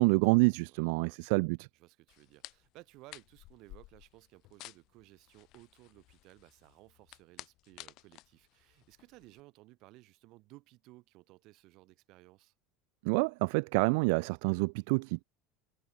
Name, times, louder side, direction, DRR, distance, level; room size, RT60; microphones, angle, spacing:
voice 1, 0.0-1.7 13.0-15.2, right 31 dB, 70° right, 0.3 m, -27 dB
voice 2, 0.7-1.2 1.7-12.5, right 20 dB, 55° right, 4.2 m, -58 dB
sound 1, 2.1-9.4, left 19 dB, 55° left, 0.7 m, -54 dB
supercardioid pair, 130°, 0 cm